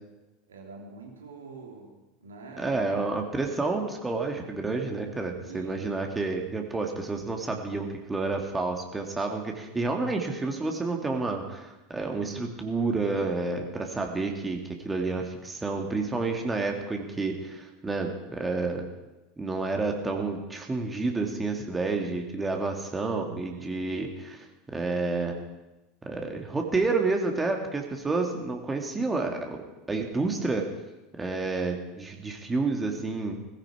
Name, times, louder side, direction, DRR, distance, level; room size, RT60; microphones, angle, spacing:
voice 1, 0.5-2.8 5.5-5.9 23.5-23.8, right 3 dB, 70° right, 0 dB, 3.3 m, -45 dB
voice 2, 2.6-18.8 19.4-25.3 26.0-29.6 29.9-30.7 31.2-33.4, right 3 dB, 15° right, 2 dB, 2.5 m, -29 dB
19.0 x 15.5 x 4.7 m, 1.1 s
figure-of-eight pair, 75°, 0 cm